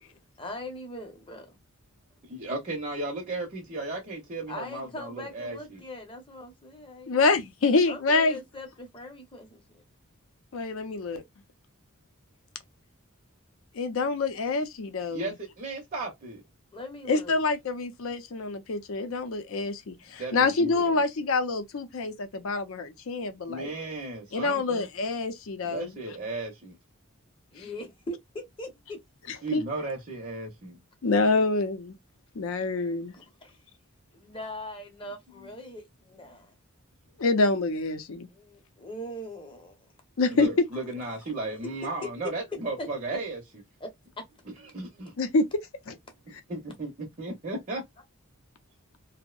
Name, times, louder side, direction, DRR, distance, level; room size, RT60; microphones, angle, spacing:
voice 1, 0.1-1.6 4.5-7.2 7.9-9.8 16.7-17.4 27.5-29.0 32.7-33.6 34.1-36.5 38.3-39.7 41.0-41.1 42.8-42.9 43.8-43.9 44.2-44.3, left 1 dB, 25° left, 0.7 m, -41 dB
voice 2, 2.3-5.8 15.1-16.4 20.2-21.0 23.5-24.9 25.6-26.8 29.4-30.8 40.3-43.4 44.7-45.1 46.5-47.8, right 2 dB, 35° right, 0.6 m, -35 dB
voice 3, 7.1-8.4 10.5-11.2 13.8-15.3 17.1-23.7 24.3-25.9 29.5-29.6 31.0-31.9 32.4-33.1 37.2-38.3 40.2-40.5 45.2-45.4 45.9-46.0, left 3 dB, 65° left, 0.5 m, -26 dB
2.6 x 2.0 x 2.3 m
head